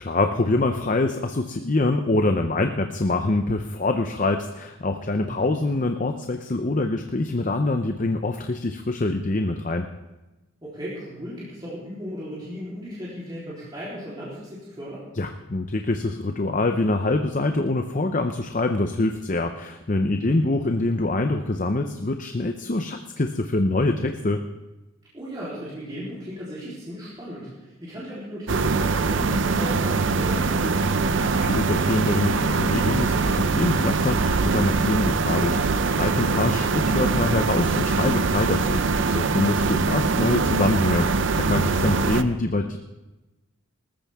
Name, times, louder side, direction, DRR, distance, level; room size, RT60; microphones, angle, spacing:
voice 1, 0.0-9.9 15.2-24.4 31.3-41.1 41.4-42.8, left 2 dB, 35° left, 6 dB, 0.6 m, -25 dB
voice 2, 5.2-5.7 10.6-15.1 20.2-20.7 25.1-31.1, equal, 20° right, -9 dB, 3.5 m, -36 dB
sound 1, 28.5-42.2, right 4 dB, 55° right, 0.6 m, -23 dB
19.5 x 14.0 x 3.6 m, 1.1 s
head